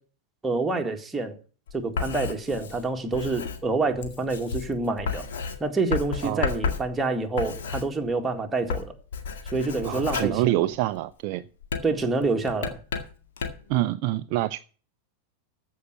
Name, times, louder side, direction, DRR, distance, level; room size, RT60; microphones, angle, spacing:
voice 1, 0.4-1.4 1.7-5.3 5.6-8.9 9.5-10.7 11.8-12.8, right 3 dB, 10° right, 1.9 m, -27 dB
Writing, 1.7-8.3 8.6-11.1 11.6-13.7, left 5 dB, 60° left, 2.0 m, -33 dB
voice 2, 9.8-11.4 13.7-14.6, right 15 dB, 45° right, 0.5 m, -26 dB
14.5 x 5.6 x 6.5 m
figure-of-eight pair, 90°, 0 cm